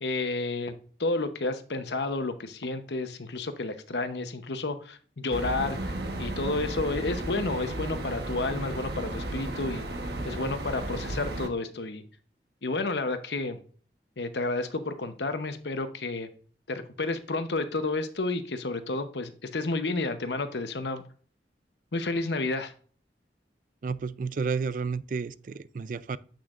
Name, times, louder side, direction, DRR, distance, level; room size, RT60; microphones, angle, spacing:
voice 1, 0.0-5.9 6.2-9.9 10.2-12.0 12.6-13.6 14.2-16.3 16.7-21.0 21.9-22.7, left 2 dB, 80° left, 0.9 m, -31 dB
sound 1, 5.3-11.5, right 1 dB, 70° right, 1.0 m, -34 dB
voice 2, 23.8-26.2, right 5 dB, 50° right, 0.3 m, -31 dB
8.4 x 6.1 x 2.5 m
head